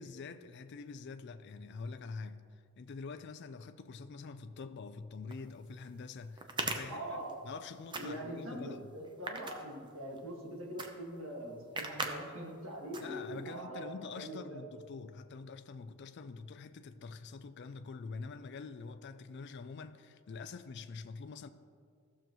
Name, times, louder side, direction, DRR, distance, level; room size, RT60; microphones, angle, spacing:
voice 1, 0.0-7.2 7.4-8.9 13.0-21.5, left 4 dB, 50° left, 0.4 m, -46 dB
sound 1, 5.3-5.4 6.4-7.6 7.9-8.4 9.0-10.2 10.8-10.9 11.2-11.3 11.8-12.1 12.5-12.6 12.9-13.5, right 3 dB, 20° right, 0.6 m, -38 dB
voice 2, 6.9-7.4 8.0-14.6, right 1 dB, 70° right, 1.8 m, -43 dB
14.5 x 6.9 x 3.0 m
head